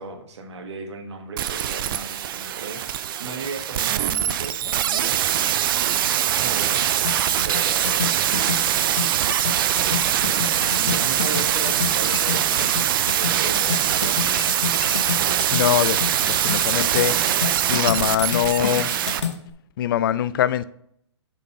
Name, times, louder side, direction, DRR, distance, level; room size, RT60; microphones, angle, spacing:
voice 1, 0.0-6.9 7.4-9.3 9.8-12.7 13.2-14.7, right 3 dB, 70° right, 1.5 m, -36 dB
sound 1, 1.4-19.2 19.5-19.6, right 11 dB, 50° right, 0.5 m, -22 dB
sound 2, 6.0-6.8 7.6-8.4 9.9-10.8 12.0-12.8 14.2-15.1, left 5 dB, 70° left, 1.6 m, -41 dB
sound 3, 7.0-19.3, left 6 dB, 90° left, 1.1 m, -30 dB
voice 2, 15.5-16.0 16.2-18.9 19.8-20.6, left 11 dB, 50° left, 0.4 m, -23 dB
7.3 x 4.0 x 5.4 m
hypercardioid pair, 135°, 15 cm